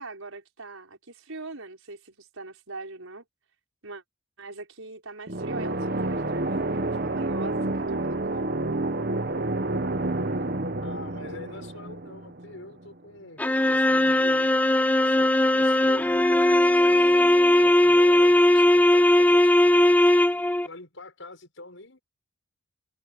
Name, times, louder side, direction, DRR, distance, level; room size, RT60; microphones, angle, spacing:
voice 1, 0.0-3.2 3.8-4.0 4.4-8.5, right 3 dB, 85° right, 5.5 m, -41 dB
sound 1, 5.3-12.9, right 2 dB, 45° right, 1.1 m, -29 dB
voice 2, 10.8-14.5 15.0-17.3 17.6-20.1 20.6-22.0, left 2 dB, 70° left, 6.4 m, -44 dB
sound 2, 13.4-20.7, left 1 dB, 5° left, 0.3 m, -19 dB
head